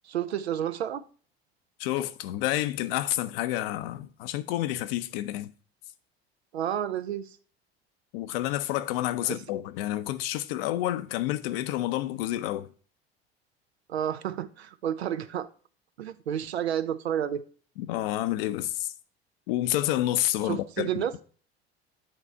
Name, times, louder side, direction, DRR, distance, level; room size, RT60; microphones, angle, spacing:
voice 1, 0.0-1.0 6.5-7.3 9.2-9.4 13.9-15.5 16.0-17.4 20.4-21.1, right 10 dB, 85° right, 0.5 m, -30 dB
voice 2, 1.8-5.5 8.1-12.7 17.8-18.9 19.5-21.0, left 14 dB, 65° left, 0.6 m, -29 dB
8.6 x 3.4 x 4.1 m
figure-of-eight pair, 70°, 31 cm